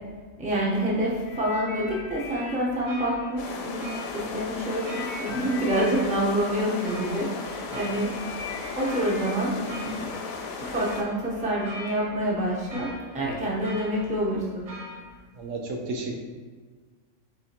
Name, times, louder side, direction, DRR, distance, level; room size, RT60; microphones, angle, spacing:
voice 1, 0.4-8.2 8.7-10.1 10.6-14.6, right 1 dB, 10° right, -5 dB, 0.6 m, -27 dB
sound 1, 1.2-4.2 4.6-13.6 14.3-14.5, left 3 dB, 50° left, 0.8 m, -43 dB
sound 2, 2.4-15.0, equal, 55° right, 0.6 m, -44 dB
sound 3, 3.4-11.0, left 5 dB, 90° left, 1.0 m, -36 dB
voice 2, 15.4-16.2, right 2 dB, 70° right, 1 dB, 1.0 m, -32 dB
4.8 x 3.4 x 2.8 m, 1.5 s
omnidirectional pair, 1.4 m